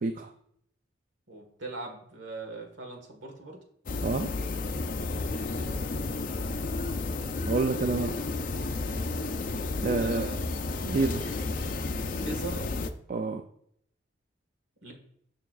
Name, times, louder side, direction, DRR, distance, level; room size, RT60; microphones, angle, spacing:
voice 1, 0.0-0.3 4.0-4.3 7.5-8.3 9.8-10.3 10.8-11.5 13.1-13.4, right 3 dB, 45° right, 7 dB, 0.4 m, -28 dB
voice 2, 1.3-3.6 5.3-6.2 9.9-10.4 12.1-12.7 14.8-14.9, right 2 dB, 90° right, 3 dB, 1.5 m, -41 dB
sound 1, 3.9-12.9, left 3 dB, 45° left, 0.4 m, -32 dB
6.8 x 6.1 x 2.4 m, 0.69 s
head